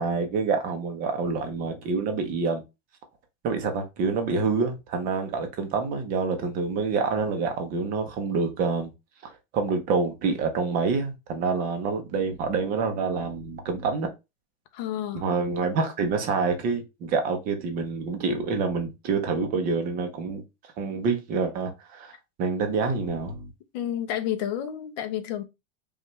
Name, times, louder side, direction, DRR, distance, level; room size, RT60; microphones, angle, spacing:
voice 1, 0.0-2.6 3.4-8.9 9.2-14.1 15.1-23.5, right 4 dB, 25° right, 0.6 m, -27 dB
voice 2, 14.7-15.2 23.7-25.4, left 10 dB, 35° left, 0.6 m, -30 dB
5.3 x 2.4 x 3.0 m
supercardioid pair, 165°, 37 cm